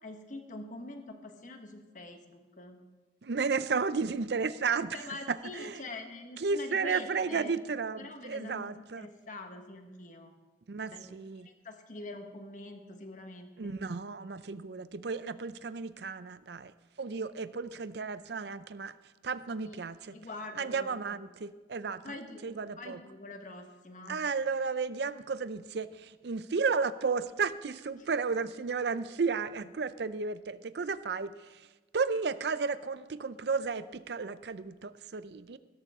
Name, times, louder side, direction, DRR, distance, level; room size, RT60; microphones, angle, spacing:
voice 1, 0.0-2.8 4.8-7.5 8.0-10.3 10.9-11.2 11.4-13.8 19.6-19.8 20.1-21.2 22.0-24.2 28.0-28.1, left 2 dB, 45° left, 5 dB, 1.4 m, -45 dB
voice 2, 3.2-5.0 5.3-5.8 6.4-9.1 10.7-11.5 13.6-16.7 17.0-18.9 19.2-20.2 20.6-22.1 22.4-23.0 24.1-31.7 31.9-35.6, right 5 dB, 65° right, 14 dB, 0.5 m, -33 dB
16.0 x 13.5 x 3.7 m, 1.3 s
head